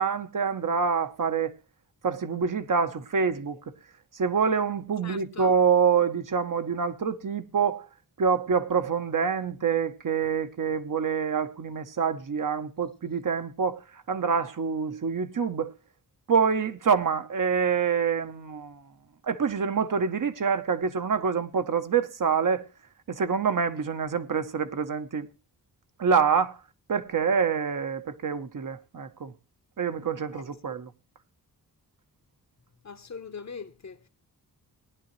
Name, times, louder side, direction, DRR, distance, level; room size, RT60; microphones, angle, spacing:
voice 1, 0.0-1.5 2.0-3.7 4.1-7.9 8.2-15.7 16.3-18.9 19.2-22.7 23.1-25.3 26.0-26.6 26.9-29.3 29.8-30.9, right 6 dB, 55° right, 0.9 m, -26 dB
voice 2, 5.0-5.5 30.3-30.7 32.8-34.1, left 5 dB, 45° left, 1.0 m, -42 dB
18.5 x 10.5 x 3.1 m
wide cardioid pair, 125°, 39 cm